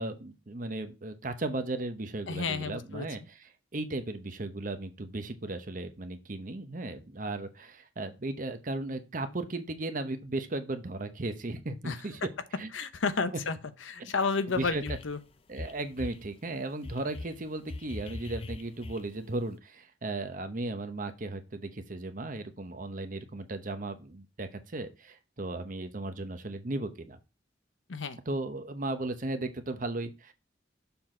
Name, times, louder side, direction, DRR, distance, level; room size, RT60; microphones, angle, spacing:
voice 1, 0.0-3.2 3.7-12.2 12.6-12.7 14.0-14.1 14.6-14.8 15.5-27.2 28.3-30.3, right 2 dB, 45° right, 0.9 m, -36 dB
voice 2, 2.3-3.1 11.8-12.0 12.7-15.2 27.9-28.2, left 4 dB, 80° left, 0.8 m, -31 dB
sound 1, 14.6-15.2 15.5-16.3 16.8-19.3, left 2 dB, 30° left, 0.4 m, -41 dB
7.0 x 4.0 x 4.4 m
head